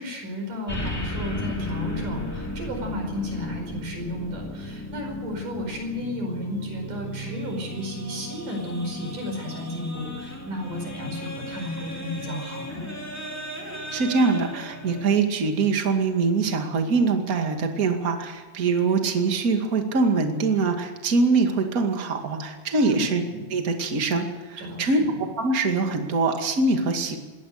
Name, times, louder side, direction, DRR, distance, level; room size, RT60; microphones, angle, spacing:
voice 1, 0.0-12.9 22.8-23.0 24.6-25.0, left 1 dB, 55° right, 3 dB, 6.5 m, -33 dB
sound 1, 0.7-15.0, left 1 dB, 5° left, 3.1 m, -35 dB
voice 2, 13.9-23.2 23.5-27.2, right 4 dB, 30° right, 4 dB, 1.9 m, -23 dB
22.0 x 18.5 x 6.7 m, 1.3 s
omnidirectional pair, 4.5 m